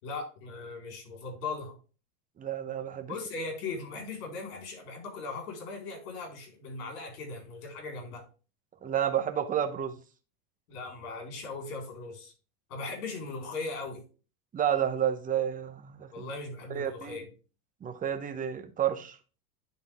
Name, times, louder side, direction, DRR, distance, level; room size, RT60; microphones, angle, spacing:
voice 1, 0.0-1.7 3.1-8.2 10.7-12.3 12.7-14.0 16.1-17.3, left 3 dB, 70° left, 1 dB, 4.2 m, -38 dB
voice 2, 2.4-3.1 8.8-9.9 14.5-16.3 16.7-17.2 17.8-19.2, right 9 dB, 20° right, 7 dB, 0.8 m, -30 dB
10.0 x 3.9 x 3.5 m, 0.35 s
supercardioid pair, 130°, 45 cm